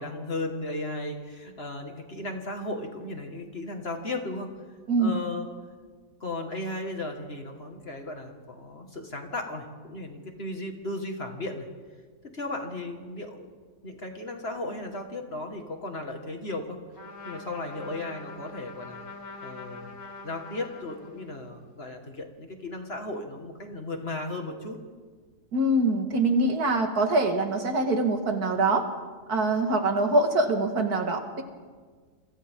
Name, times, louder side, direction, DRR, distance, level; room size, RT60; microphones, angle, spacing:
voice 1, 0.0-4.5 5.0-5.5 6.2-11.7 12.2-13.5 13.8-16.8 17.2-19.0 19.4-20.0 20.2-24.8, left 2 dB, 40° left, 3 dB, 2.1 m, -35 dB
voice 2, 4.9-5.2 25.5-28.9 29.3-31.4, right 2 dB, 70° right, 4 dB, 2.3 m, -24 dB
Trumpet, 16.9-21.5, left 3 dB, 60° left, 2.8 m, -44 dB
28.5 x 24.0 x 3.8 m, 1.5 s
omnidirectional pair, 1.7 m